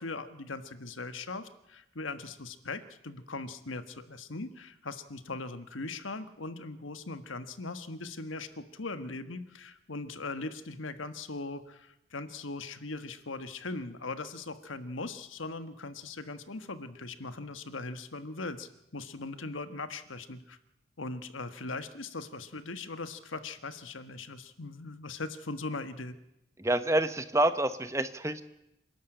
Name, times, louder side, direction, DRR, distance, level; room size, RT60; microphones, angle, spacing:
voice 1, 0.0-20.6 21.0-26.1, left 3 dB, 85° left, 11 dB, 1.5 m, -40 dB
voice 2, 26.6-28.4, right 1 dB, 15° right, 11 dB, 0.9 m, -27 dB
27.0 x 12.5 x 8.9 m, 0.87 s
head